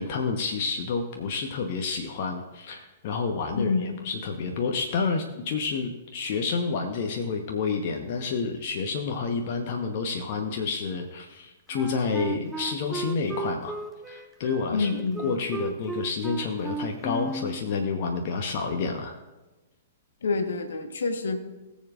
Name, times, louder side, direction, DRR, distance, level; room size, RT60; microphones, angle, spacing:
voice 1, 0.0-13.8 14.1-14.9 15.2-19.2, left 4 dB, 50° left, 3 dB, 1.0 m, -29 dB
voice 2, 3.6-3.9 14.7-15.3 20.2-21.4, left 4 dB, 65° left, 6 dB, 1.3 m, -27 dB
Wind instrument woodwind instrument, 11.7-17.6, right 2 dB, 5° right, 0.9 m, -34 dB
20.5 x 7.3 x 2.5 m, 1.1 s
figure-of-eight pair, 110°, 0 cm